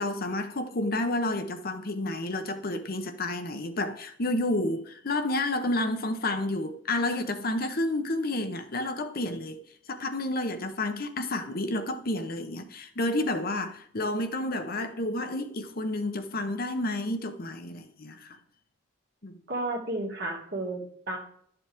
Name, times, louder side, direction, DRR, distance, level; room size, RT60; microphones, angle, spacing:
voice 1, 0.0-9.6 9.9-18.4 19.2-19.4, left 1 dB, 50° left, 0.9 m, -30 dB
voice 2, 19.5-21.2, right 2 dB, 55° right, 2.3 m, -32 dB
12.0 x 7.0 x 3.6 m
head